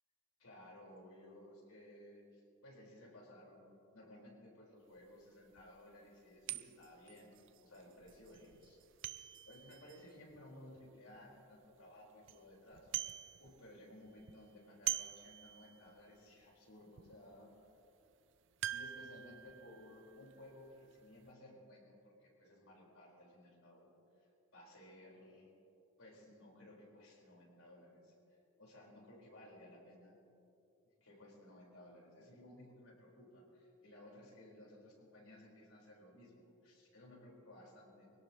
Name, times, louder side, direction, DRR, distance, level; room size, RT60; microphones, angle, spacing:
voice 1, 0.4-8.8 9.1-17.5 18.7-23.9 24.5-25.5 26.0-30.2 31.0-38.1, left 1 dB, 90° left, -3 dB, 4.9 m, -58 dB
sound 1, 5.0-5.1 5.6-5.7 6.5-11.2 11.6-11.7 12.0-12.4 12.7-13.8 14.0-16.0 16.4-16.5 17.0-17.2 18.6-21.0 21.3-21.4, right 13 dB, 60° right, 0.4 m, -45 dB
24.0 x 17.5 x 3.1 m, 2.8 s
head